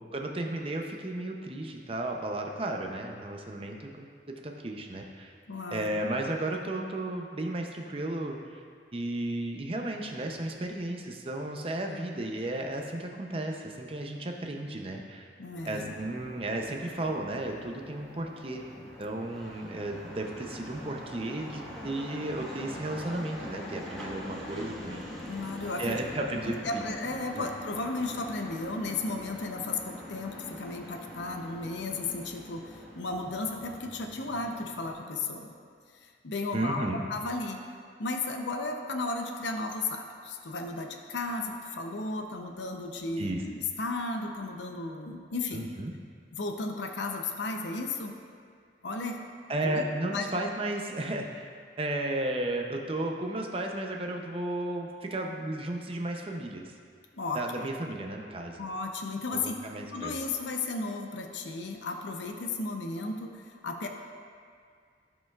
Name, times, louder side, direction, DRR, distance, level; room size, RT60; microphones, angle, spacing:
voice 1, 0.0-4.1 4.4-5.3 5.7-8.6 8.9-15.3 15.7-25.1 25.8-26.9 27.4-27.5 36.5-37.0 43.2-43.4 45.5-45.9 49.5-51.5 51.8-56.7 57.3-58.6 59.3-60.2, right 1 dB, 30° right, 2 dB, 0.6 m, -34 dB
voice 2, 5.5-6.0 15.4-15.9 25.3-26.0 26.6-35.5 35.9-37.6 38.0-45.7 46.3-48.1 48.8-49.2 49.6-49.8 50.1-50.4 57.1-57.7 58.6-59.6 59.9-63.9, left 3 dB, 80° left, 4 dB, 0.7 m, -34 dB
sound 1, 15.5-34.9, left 1 dB, ahead, 1.2 m, -44 dB
15.0 x 5.3 x 2.4 m, 2.1 s
head